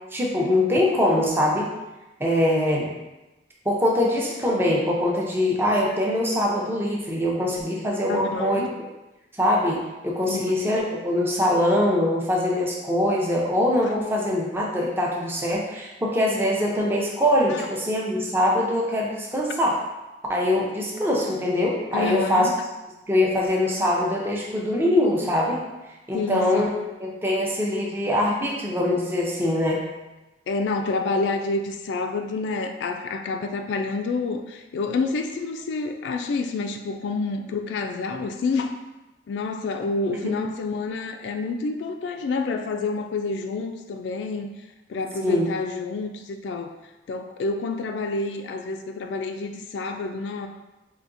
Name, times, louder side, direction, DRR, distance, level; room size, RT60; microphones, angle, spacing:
voice 1, 0.1-1.7 2.2-2.9 3.6-8.6 9.4-19.8 20.3-22.5 23.1-25.6 26.1-26.7 27.0-29.8 40.2-40.4 45.2-45.5, left 1 dB, 15° right, -3 dB, 0.6 m, -23 dB
voice 2, 8.1-8.7 10.3-10.7 13.8-13.9 17.5-17.7 21.9-22.5 26.1-26.7 30.5-38.7 39.3-44.5 44.9-46.7 47.1-50.5, left 3 dB, 85° left, 5 dB, 0.3 m, -28 dB
4.9 x 2.7 x 2.6 m, 1.0 s
head